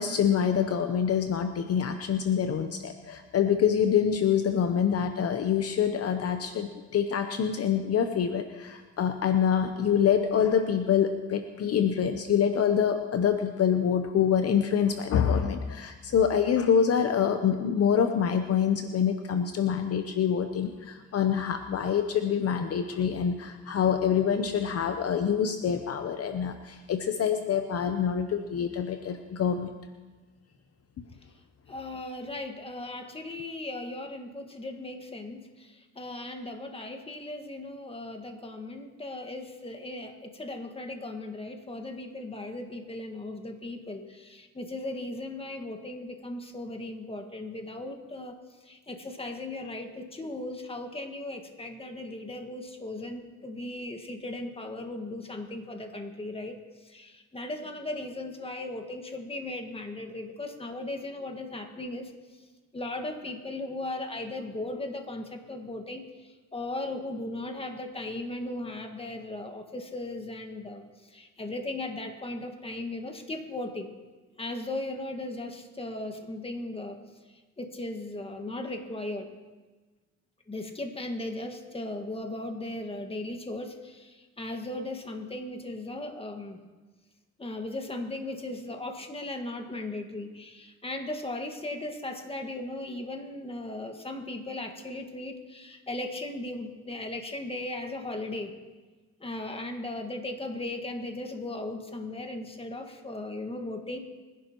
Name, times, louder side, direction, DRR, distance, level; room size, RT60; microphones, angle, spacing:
voice 1, 0.0-29.7, left 8 dB, 55° left, 7 dB, 0.8 m, -26 dB
voice 2, 31.7-48.4 48.6-56.5 56.8-62.1 62.7-73.9 74.4-77.0 77.3-79.3 80.5-86.6 87.4-98.5 99.2-104.0, left 2 dB, 20° left, 4 dB, 1.8 m, -37 dB
25.0 x 11.0 x 3.1 m, 1.3 s
cardioid pair, 90°, 30 cm